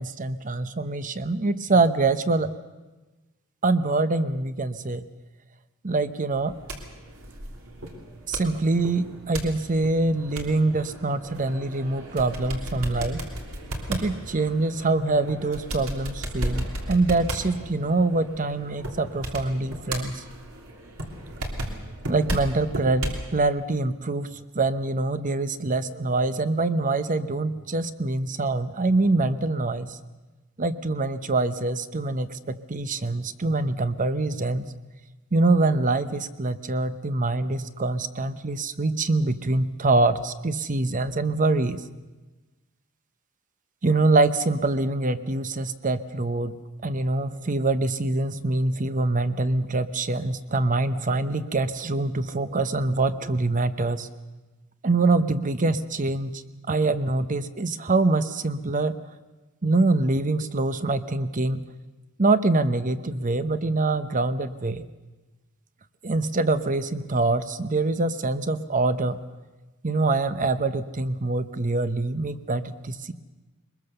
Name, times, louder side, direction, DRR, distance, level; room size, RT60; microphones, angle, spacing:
voice 1, 0.0-2.5 3.6-5.0 5.8-6.6 8.3-13.2 13.9-20.2 22.1-30.0 30.6-34.7 35.3-41.8 43.8-46.6 46.8-54.1 54.8-56.4 56.7-59.0 59.6-61.6 62.2-64.8 66.0-69.2 69.8-73.1, right 2 dB, 40° right, 12 dB, 0.9 m, -24 dB
sound 1, 6.3-23.3, right 1 dB, 85° right, 3.2 m, -35 dB
22.0 x 21.5 x 6.9 m, 1.2 s
head